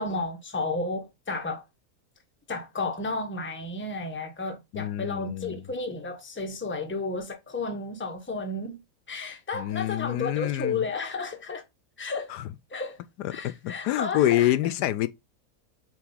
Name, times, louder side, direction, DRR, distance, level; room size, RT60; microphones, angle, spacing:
voice 1, 0.0-1.6 2.5-8.8 9.1-11.6 12.0-12.4 12.7-13.0 13.3-14.5, left 3 dB, 10° left, 0.9 m, -32 dB
voice 2, 4.7-5.6 9.5-10.9 12.3-12.4 13.2-15.1, left 13 dB, 80° left, 1.2 m, -27 dB
7.7 x 3.6 x 3.8 m
omnidirectional pair, 1.7 m